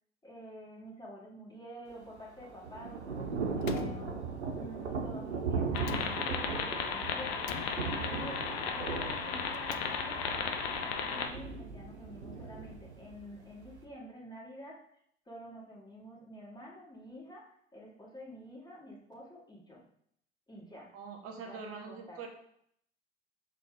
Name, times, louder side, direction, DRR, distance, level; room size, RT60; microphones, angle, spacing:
voice 1, 0.2-4.1 4.5-14.8 15.3-19.8 20.5-20.9 21.5-22.2, equal, 10° left, -4 dB, 2.4 m, -49 dB
Thunder / Rain, 1.9-13.8, right 5 dB, 85° right, 0.9 m, -38 dB
Slam, 3.6-4.7 5.8-6.7 7.4-8.3 9.4-10.4, left 13 dB, 50° left, 0.5 m, -46 dB
sound 1, 5.7-11.3, left 5 dB, 65° left, 0.9 m, -35 dB
voice 2, 20.9-22.3, right 5 dB, 45° right, 2 dB, 1.6 m, -43 dB
7.1 x 4.1 x 3.8 m, 0.70 s
figure-of-eight pair, 70°, 33 cm